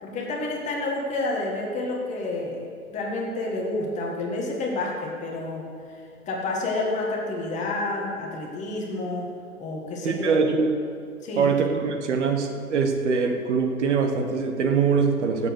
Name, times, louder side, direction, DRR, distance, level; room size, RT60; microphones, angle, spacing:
voice 1, 0.0-6.0 6.2-9.3 9.6-10.4 11.2-11.5, left 2 dB, 15° left, -1 dB, 1.8 m, -29 dB
voice 2, 10.0-10.7 11.4-15.5, right 5 dB, 50° right, 5 dB, 1.5 m, -23 dB
16.0 x 7.6 x 6.5 m, 2.3 s
hypercardioid pair, 135°, 44 cm